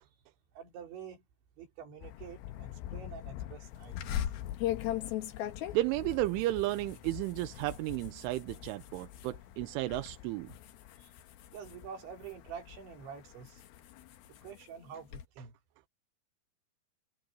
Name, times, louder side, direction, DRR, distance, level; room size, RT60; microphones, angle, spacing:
voice 1, 0.5-1.2 1.6-4.3 11.5-13.6 14.3-15.5, right 7 dB, 70° right, 5.8 m, -47 dB
Thunder, 2.0-14.5, left 13 dB, 80° left, 3.2 m, -47 dB
sound 1, 4.0-9.3 9.7-10.1 10.5-12.5 13.1-15.3, left 11 dB, 65° left, 2.8 m, -39 dB
voice 2, 5.7-10.5 11.0-11.1, right 17 dB, 85° right, 3.3 m, -33 dB
omnidirectional pair, 5.6 m